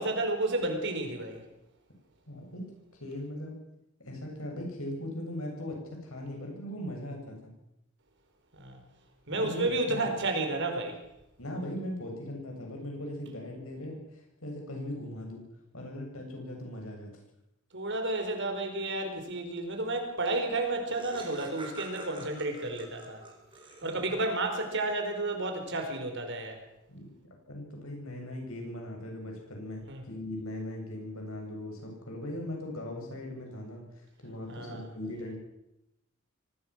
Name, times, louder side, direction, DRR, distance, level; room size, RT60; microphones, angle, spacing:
voice 1, 0.0-1.4 8.5-8.8 9.3-11.0 17.7-23.2 23.8-26.6 29.9-30.0 34.5-34.8, right 2 dB, 60° right, 5 dB, 4.7 m, -31 dB
voice 2, 2.3-2.7 3.0-3.5 4.0-7.5 9.3-10.0 11.4-15.4 15.7-17.2 23.7-24.1 26.9-27.1 27.5-35.4, left 1 dB, 80° left, 1 dB, 7.9 m, -39 dB
Laughter, 20.3-20.4 20.6-24.3, right 2 dB, 25° right, 4.4 m, -46 dB
24.0 x 18.5 x 6.4 m, 0.85 s
head